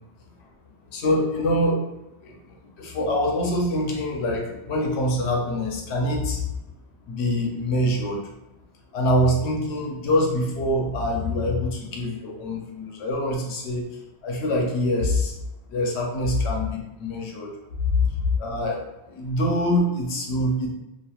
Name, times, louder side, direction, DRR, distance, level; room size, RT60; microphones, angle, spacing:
voice 1, 0.9-1.8 2.2-6.5 7.1-8.3 8.9-15.4 15.7-17.6 17.9-20.7, left 1 dB, 85° left, 0 dB, 0.9 m, -25 dB
2.9 x 2.5 x 2.3 m, 0.96 s
omnidirectional pair, 1.1 m